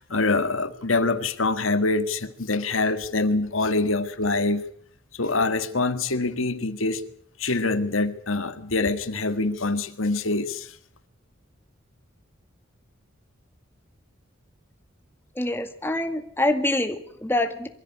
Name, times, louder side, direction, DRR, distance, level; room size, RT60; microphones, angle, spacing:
voice 1, 0.0-4.6 5.1-7.0 7.4-10.7, left 3 dB, 90° left, 10 dB, 1.8 m, -25 dB
voice 2, 15.4-17.7, left 1 dB, 10° left, 6 dB, 2.0 m, -25 dB
23.5 x 16.0 x 9.7 m, 0.63 s
head